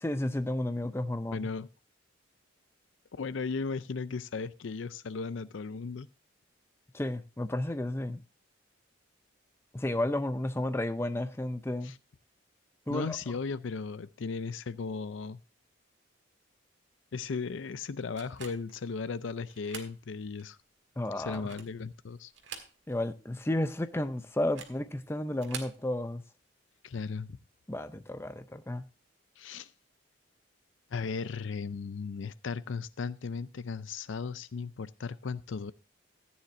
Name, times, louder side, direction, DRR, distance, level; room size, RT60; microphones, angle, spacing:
voice 1, 0.0-1.5 6.9-8.2 9.7-12.0 12.9-13.2 21.0-21.4 22.9-26.2 27.7-28.8, left 1 dB, 10° left, 0.5 m, -32 dB
voice 2, 1.3-1.7 3.2-6.1 11.8-12.0 12.9-15.4 17.1-20.6 21.1-22.3 26.8-27.4 29.4-29.7 30.9-35.7, left 4 dB, 70° left, 0.5 m, -36 dB
sound 1, 18.2-18.8 19.5-20.0 20.4-20.5 21.2-21.8 22.3-23.1 23.4-23.5 24.4-24.8 25.3-25.8, right 7 dB, 60° right, 1.8 m, -45 dB
14.5 x 9.5 x 2.6 m
head